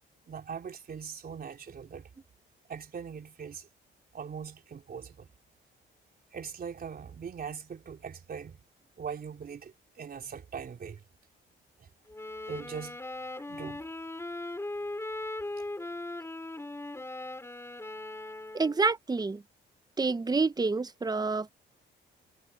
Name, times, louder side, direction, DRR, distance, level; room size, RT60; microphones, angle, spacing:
voice 1, 0.3-2.1 2.7-3.7 4.1-5.3 6.3-8.6 9.0-11.0 12.5-13.0 13.5-13.8, right 6 dB, 50° right, 3.6 m, -41 dB
sound 1, 12.1-18.9, left 2 dB, 15° left, 4.6 m, -39 dB
voice 2, 18.5-19.4 20.0-21.5, right 3 dB, 20° right, 0.8 m, -28 dB
cardioid pair, 90°, 20 cm